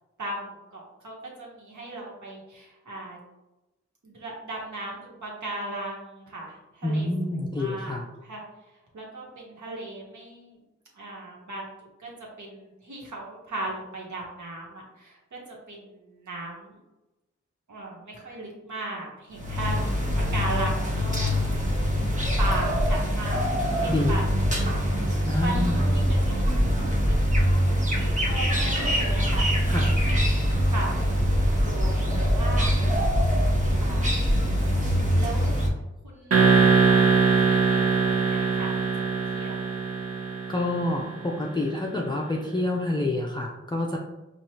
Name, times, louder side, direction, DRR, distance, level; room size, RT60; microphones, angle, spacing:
voice 1, 0.2-3.2 4.0-7.1 7.6-8.4 8.9-10.6 10.9-11.6 12.0-12.1 12.4-15.4 15.7-16.7 17.7-20.0 20.3-21.6 22.4-24.9 25.4-27.3 27.6-29.9 30.4-31.0 31.6-32.7 33.8-34.2 35.1-35.6 36.0-36.4 36.7-38.9 39.3-39.6, right 2 dB, 80° right, -3 dB, 1.2 m, -37 dB
voice 2, 6.8-8.1 23.9-24.2 25.3-25.8 29.7-29.9 40.5-44.0, left 1 dB, 15° left, -1 dB, 0.4 m, -27 dB
sound 1, 19.3-35.7, equal, 25° right, 0.9 m, -23 dB
sound 2, 36.3-41.2, right 5 dB, 55° right, 0.8 m, -22 dB
4.7 x 2.4 x 2.9 m, 1.0 s
wide cardioid pair, 70°, 29 cm